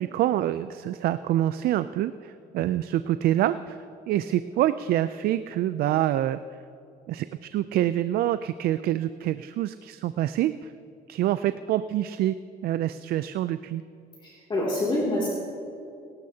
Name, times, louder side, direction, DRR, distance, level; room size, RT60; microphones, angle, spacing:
voice 1, 0.0-3.8 4.1-6.4 7.1-10.7 11.1-12.4 12.6-13.8, right 13 dB, 65° right, 13 dB, 0.4 m, -26 dB
voice 2, 14.2-15.3, left 1 dB, 30° left, -5 dB, 2.6 m, -26 dB
24.0 x 13.0 x 2.8 m, 2.6 s
cardioid pair, 110°, 17 cm